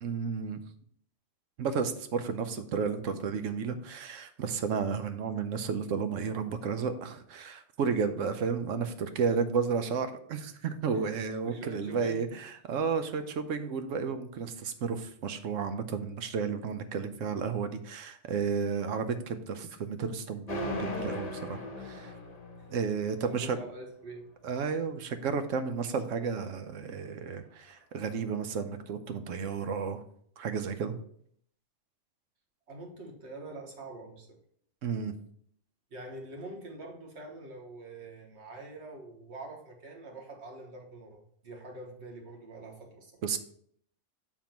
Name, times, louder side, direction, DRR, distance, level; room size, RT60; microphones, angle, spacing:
voice 1, 0.0-0.6 1.6-22.1 22.7-23.6 24.4-30.0 30.4-30.9 34.8-35.1 43.2-43.4, right 6 dB, 90° right, 9 dB, 1.1 m, -32 dB
voice 2, 11.4-12.2 23.1-24.3 32.7-34.4 35.9-43.1, right 2 dB, 65° right, 1 dB, 1.7 m, -45 dB
sound 1, 20.5-23.4, left 2 dB, 35° left, 1.2 m, -38 dB
7.3 x 3.6 x 5.8 m, 0.63 s
omnidirectional pair, 1.3 m